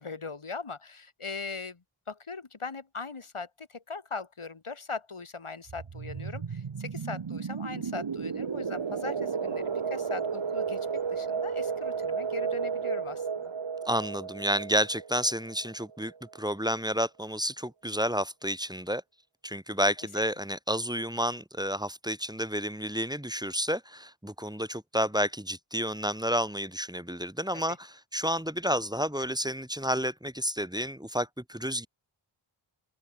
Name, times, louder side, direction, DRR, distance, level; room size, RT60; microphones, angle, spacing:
voice 1, 0.0-13.5 27.5-27.6, left 4 dB, 90° left, 3.1 m, -40 dB
sound 1, 5.7-16.2, right 6 dB, 65° right, 1.2 m, -33 dB
voice 2, 13.9-19.0 19.4-31.9, equal, 10° right, 2.3 m, -30 dB
open air
wide cardioid pair, 55°, 49 cm